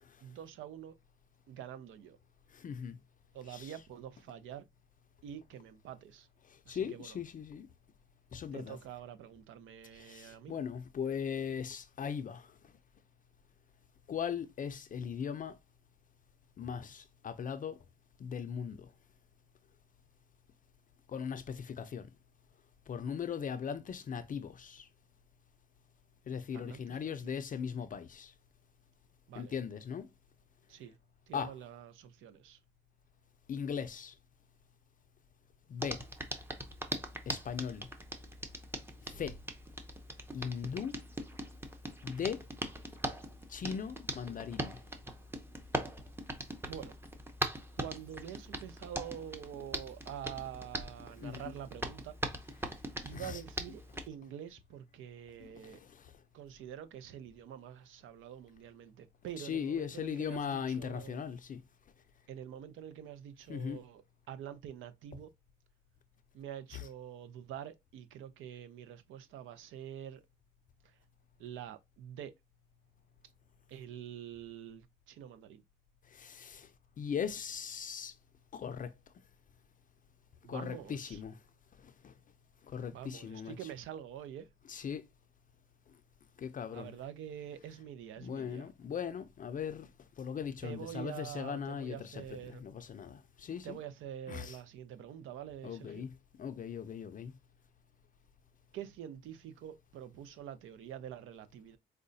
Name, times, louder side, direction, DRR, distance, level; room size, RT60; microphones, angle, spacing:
voice 1, 0.2-0.9 1.5-2.2 3.3-4.6 5.2-6.3 6.7-7.2 8.5-10.6 26.5-27.3 29.3-29.6 30.7-31.0 31.3-32.6 46.7-46.9 47.8-52.2 53.0-55.8 56.3-61.2 62.3-65.3 66.3-70.2 70.8-70.9 71.4-72.3 73.7-75.6 80.4-81.2 82.9-84.5 86.7-88.7 90.6-92.6 93.6-96.0 98.7-101.8, right 10 dB, 80° right, 0.5 m, -46 dB
voice 2, 2.5-3.0 3.5-3.7 6.5-7.7 8.3-8.8 9.9-12.6 14.1-15.6 16.6-17.8 18.2-18.9 21.1-22.1 22.9-24.9 26.3-28.3 29.4-30.1 31.3-31.5 33.5-34.1 35.7-36.0 37.3-37.9 39.1-39.4 40.3-41.0 42.0-42.4 43.5-44.8 51.2-51.5 52.6-52.7 53.1-53.4 55.6-56.1 59.4-61.6 63.5-63.8 76.1-76.7 77.0-78.1 78.5-78.9 80.5-81.4 81.8-82.1 82.7-83.5 84.7-85.0 86.4-87.0 88.2-89.9 90.2-92.1 92.5-93.8 94.3-94.6 95.6-97.3, left 7 dB, 45° left, 0.5 m, -39 dB
Hands, 35.8-54.1, right 1 dB, 10° right, 0.7 m, -41 dB
4.8 x 2.2 x 2.6 m
cardioid pair, 90°, 20 cm